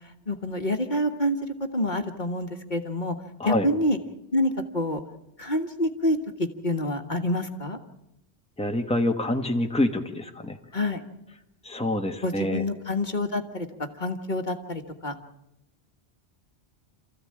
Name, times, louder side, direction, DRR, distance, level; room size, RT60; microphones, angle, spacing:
voice 1, 0.3-3.1 3.4-4.0 4.3-5.0 5.4-7.8 10.7-11.0 12.2-13.7 14.0-15.1, left 1 dB, 45° left, 5 dB, 1.6 m, -27 dB
voice 2, 8.6-10.6 11.6-12.6, left 1 dB, 5° left, 4 dB, 1.5 m, -26 dB
28.0 x 15.0 x 8.8 m, 0.89 s
omnidirectional pair, 1.1 m